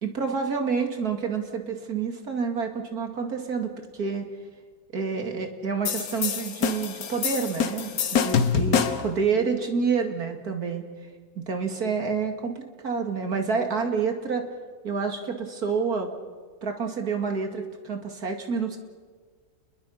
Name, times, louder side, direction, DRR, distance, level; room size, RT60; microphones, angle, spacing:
voice 1, 0.0-3.7 4.0-4.3 4.9-10.9 11.4-14.4 14.8-16.1 16.6-18.8, right 5 dB, 70° right, 4 dB, 2.8 m, -28 dB
sound 1, 5.9-9.2, left 6 dB, 65° left, 1.6 m, -26 dB
29.0 x 22.0 x 5.7 m, 1.5 s
omnidirectional pair, 1.7 m